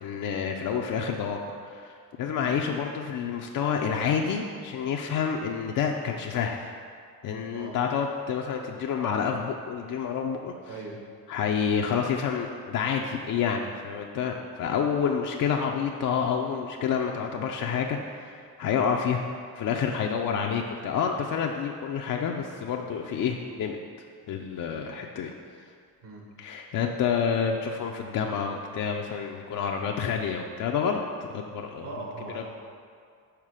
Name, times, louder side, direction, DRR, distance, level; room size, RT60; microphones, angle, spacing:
voice 1, 0.0-6.7 7.2-10.5 11.3-19.3 19.5-23.8 24.3-25.3 26.4-31.9 32.3-32.4, left 7 dB, 45° left, 1 dB, 0.5 m, -28 dB
voice 2, 10.7-11.0 23.1-23.2 26.0-26.3 31.8-32.4, right 3 dB, 60° right, -1 dB, 1.5 m, -39 dB
5.8 x 4.3 x 4.9 m, 2.2 s
supercardioid pair, 70°, 46 cm